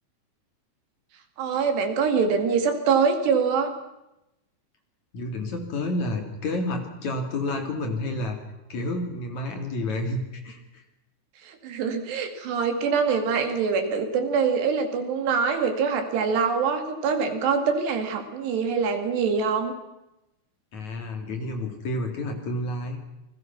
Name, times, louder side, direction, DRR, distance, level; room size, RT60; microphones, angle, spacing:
voice 1, 1.4-3.7 11.4-19.7, right 5 dB, 80° right, 6 dB, 4.5 m, -24 dB
voice 2, 5.1-8.4 8.7-10.8 20.7-23.0, left 1 dB, 45° left, 5 dB, 3.6 m, -30 dB
28.5 x 20.5 x 6.1 m, 0.90 s
omnidirectional pair, 4.8 m